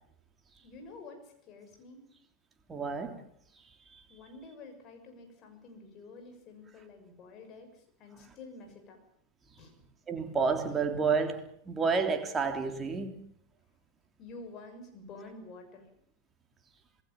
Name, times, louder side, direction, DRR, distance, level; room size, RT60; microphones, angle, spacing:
voice 1, 0.6-2.1 4.1-9.0 9.6-9.7 14.2-15.9, left 3 dB, 35° left, 6.9 m, -49 dB
voice 2, 2.7-3.2 10.1-13.1, right 5 dB, 20° right, 3.5 m, -30 dB
27.0 x 19.5 x 7.2 m
figure-of-eight pair, 90°, 0 cm